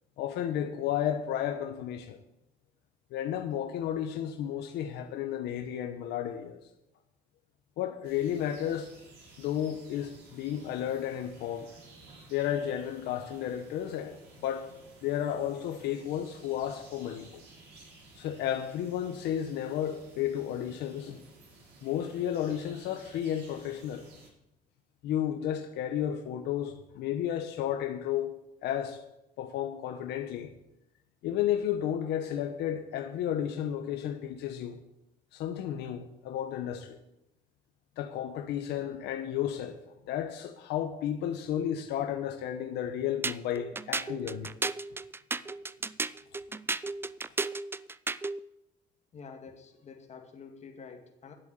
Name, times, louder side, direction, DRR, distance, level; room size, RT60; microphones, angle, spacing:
voice 1, 0.2-2.2 3.1-6.6 7.8-8.9 9.4-11.7 12.3-14.2 14.4-14.7 15.0-17.4 18.2-21.2 21.8-24.0 25.0-28.3 28.6-29.0 29.4-30.5 31.2-34.8 35.3-37.0 38.0-39.8 40.1-44.5, left 10 dB, 80° left, 1.1 m, -32 dB
sound 1, 8.0-24.3, right 2 dB, 80° right, 5.7 m, -55 dB
sound 2, 43.2-48.4, right 3 dB, 15° right, 0.4 m, -34 dB
voice 2, 49.1-51.3, left 5 dB, 40° left, 2.3 m, -48 dB
11.0 x 7.9 x 8.9 m
cardioid pair, 110°, 17 cm